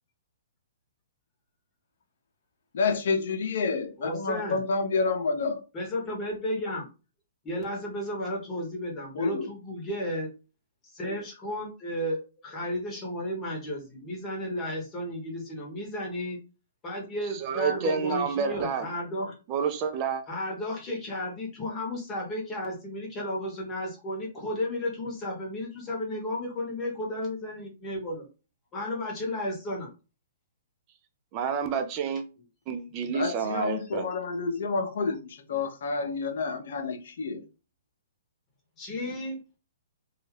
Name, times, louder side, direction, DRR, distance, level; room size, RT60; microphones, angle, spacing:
voice 1, 2.7-5.6 9.1-9.5 33.1-37.4, left 4 dB, 65° left, 0.6 m, -29 dB
voice 2, 4.0-4.6 5.7-6.9 7.4-10.3 10.8-16.4 16.8-19.3 20.3-28.2 28.7-29.9 33.0-33.1 38.8-39.4, left 1 dB, 25° left, 1.1 m, -33 dB
voice 3, 17.3-18.9 19.5-20.2 31.3-32.2 32.7-34.0, right 6 dB, 35° right, 0.5 m, -29 dB
2.7 x 2.4 x 3.1 m
hypercardioid pair, 135°, 0 cm